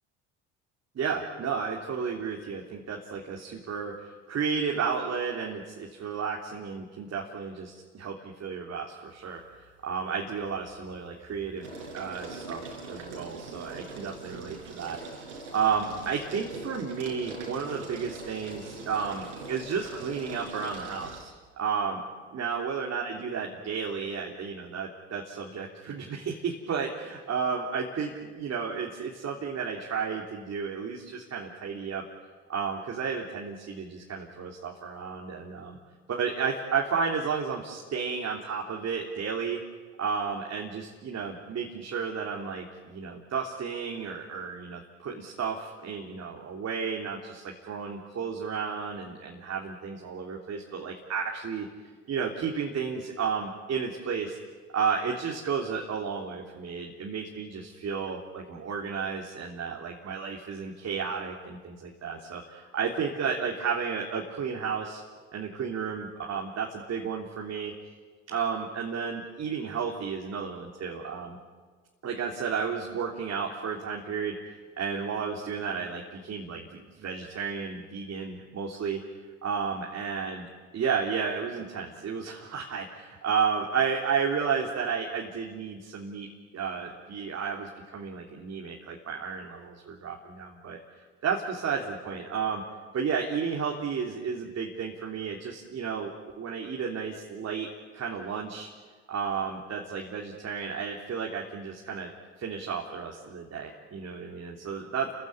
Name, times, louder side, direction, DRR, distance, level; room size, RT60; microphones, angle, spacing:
voice 1, 1.0-9.4 9.8-12.6 12.9-21.3 21.6-22.0 22.3-32.0 32.5-35.8 36.1-39.6 40.0-51.7 52.1-54.4 54.7-65.0 65.3-67.7 68.3-71.4 72.0-74.3 74.8-79.0 79.4-80.5 80.7-86.3 86.5-90.8 91.2-92.6 92.9-97.7 97.9-98.7 99.1-102.1 102.4-105.1, right 6 dB, 45° right, -1 dB, 3.5 m, -32 dB
sound 1, 9.2-9.7 10.1-21.2, right 3 dB, 90° right, 5.2 m, -43 dB
30.0 x 15.5 x 10.0 m, 1.5 s
hypercardioid pair, 70°, 35 cm